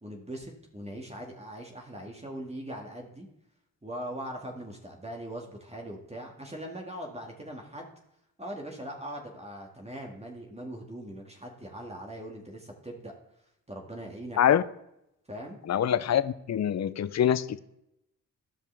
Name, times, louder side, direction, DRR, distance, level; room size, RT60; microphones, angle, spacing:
voice 1, 0.0-3.3 3.8-7.9 8.4-13.1 13.7-14.4 15.3-15.6, right 1 dB, 15° right, 2.1 m, -40 dB
voice 2, 15.7-17.6, left 9 dB, 50° left, 0.6 m, -25 dB
15.0 x 5.4 x 3.5 m
supercardioid pair, 50°, 36 cm